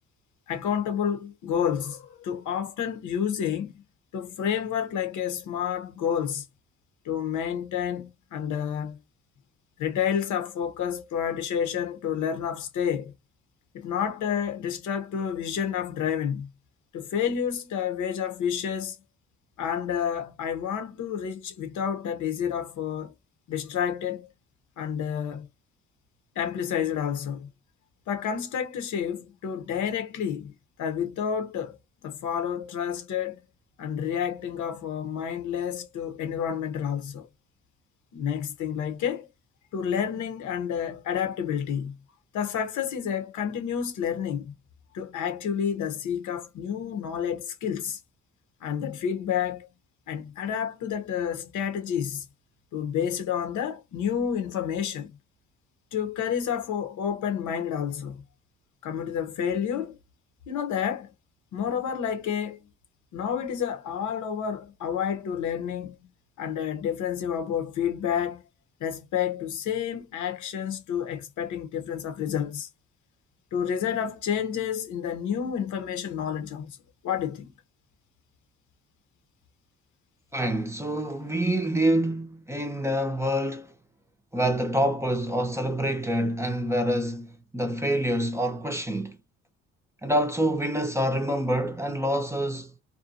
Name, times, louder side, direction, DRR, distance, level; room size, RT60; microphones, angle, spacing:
voice 1, 0.5-3.8 4.1-6.4 7.0-9.0 9.8-13.1 13.7-16.5 16.9-19.0 19.6-23.1 23.5-24.3 24.8-25.5 26.4-27.5 28.1-30.5 30.8-31.8 32.0-33.4 33.8-37.3 38.1-39.3 39.7-42.0 42.3-44.5 44.9-48.0 48.6-49.7 50.1-52.3 52.7-55.1 55.9-58.2 58.8-60.0 60.5-61.1 61.5-62.7 63.1-65.9 66.4-68.4 68.8-72.7 73.5-76.8 77.0-77.5, left 8 dB, 75° left, 0.9 m, -29 dB
voice 2, 80.3-83.7 84.3-89.2 90.0-92.7, right 1 dB, 10° right, 0.6 m, -26 dB
2.6 x 2.2 x 2.5 m
cardioid pair, 90°, 30 cm